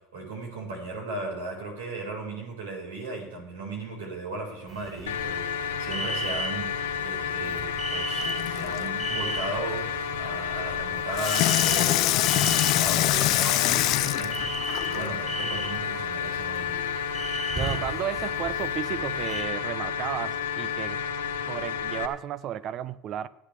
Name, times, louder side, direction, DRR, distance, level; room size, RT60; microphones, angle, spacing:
voice 1, 0.1-6.7 7.0-16.9, right 2 dB, 85° right, 4.3 m, -36 dB
sound 1, 4.7-19.4, right 2 dB, 35° right, 5.6 m, -37 dB
sound 2, 5.1-22.1, left 7 dB, 85° left, 1.0 m, -31 dB
Water tap faucet / Sink (filling or washing), 8.2-8.9 11.1-15.1 15.7-15.8, left 16 dB, 60° left, 0.5 m, -25 dB
voice 2, 17.5-21.0 21.4-23.3, right 11 dB, 50° right, 0.7 m, -33 dB
24.0 x 8.5 x 3.3 m
hypercardioid pair, 85°, 0 cm